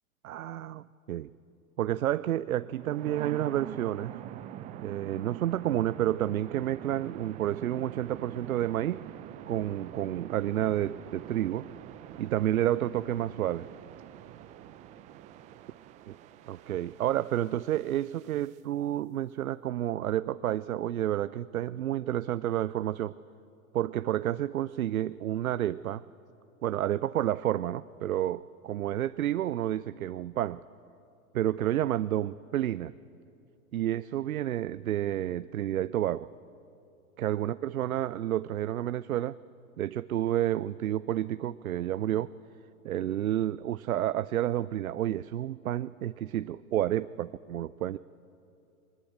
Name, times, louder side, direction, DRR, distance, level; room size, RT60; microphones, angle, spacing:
voice 1, 0.2-1.3 1.8-4.2 4.8-9.0 9.5-11.7 12.2-13.7 16.5-23.1 23.7-26.0 26.6-30.6 31.3-32.9 33.7-36.3 37.2-39.4 39.8-42.3 42.8-48.0, right 12 dB, 75° right, 16 dB, 0.5 m, -30 dB
sound 1, 2.6-18.6, right 12 dB, 15° right, 0.5 m, -45 dB
21.0 x 19.5 x 8.7 m, 2.7 s
figure-of-eight pair, 110°, 43 cm